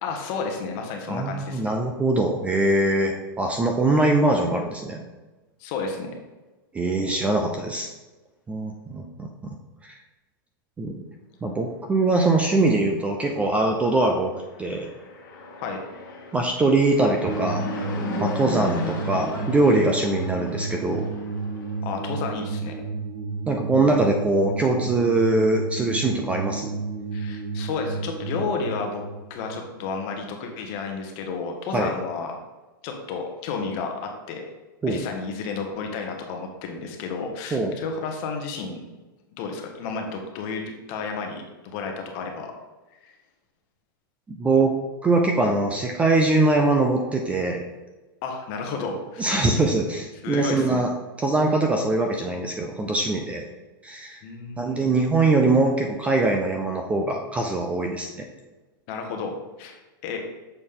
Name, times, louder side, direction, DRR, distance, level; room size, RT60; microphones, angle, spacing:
voice 1, 0.0-1.7 5.6-6.1 15.6-15.8 21.8-22.8 27.1-29.0 29.3-32.4 32.8-34.4 34.9-38.8 39.3-42.5 43.0-43.1 48.2-49.3 50.2-50.8 54.2-54.9 58.9-59.8 60.0-60.2, left 4 dB, 40° left, 3 dB, 1.1 m, -32 dB
voice 2, 1.1-5.0 6.7-7.9 8.5-9.6 9.8-9.9 10.8-11.0 11.4-14.3 14.6-14.9 16.3-17.6 18.2-21.1 23.5-26.7 31.7-31.9 34.8-35.0 37.5-37.7 44.3-44.8 45.0-47.6 49.2-50.9 51.2-53.5 53.8-54.2 54.6-58.1, right 2 dB, 10° right, 3 dB, 0.4 m, -22 dB
Fixed-wing aircraft airplane, 14.4-21.8, left 3 dB, 60° left, 1.4 m, -35 dB
sound 1, 17.3-30.4, right 4 dB, 55° right, 0.8 m, -32 dB
6.8 x 4.1 x 3.7 m, 1.2 s
supercardioid pair, 155°, 12 cm